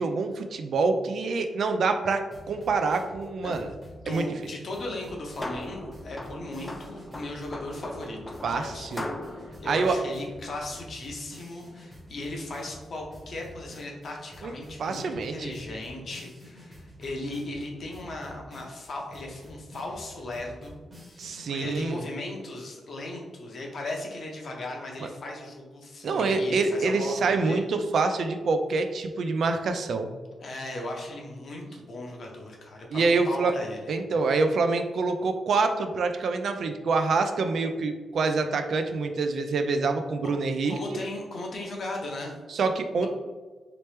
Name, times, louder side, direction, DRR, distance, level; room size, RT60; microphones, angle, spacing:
voice 1, 0.0-3.7 4.1-4.3 8.4-9.1 9.7-10.0 14.4-14.5 14.8-15.5 21.2-22.0 25.0-25.1 26.0-30.1 32.9-33.5 33.9-41.0 42.5-43.1, right 4 dB, 60° right, 7 dB, 0.3 m, -26 dB
sound 1, 2.3-21.5, equal, 20° right, 1.0 m, -48 dB
voice 2, 3.8-8.9 9.6-20.7 21.1-27.6 30.4-33.8 40.2-40.3 40.7-42.3 43.0-43.1, left 2 dB, 55° left, 0 dB, 0.7 m, -37 dB
sound 2, 5.0-10.8, left 1 dB, 20° left, 0.3 m, -41 dB
3.1 x 2.9 x 3.3 m, 1.3 s
wide cardioid pair, 140°, 0 cm